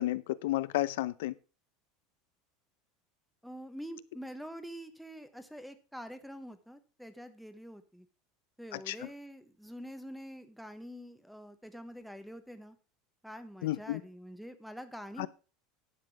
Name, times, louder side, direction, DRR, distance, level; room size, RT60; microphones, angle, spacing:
voice 1, 0.0-1.3 8.9-9.0 13.6-14.0 15.2-15.3, left 16 dB, 85° left, 0.6 m, -31 dB
voice 2, 3.4-8.1 8.6-12.8 13.2-15.3, equal, ahead, 1.1 m, -46 dB
11.0 x 7.6 x 4.7 m
supercardioid pair, 155°, 0 cm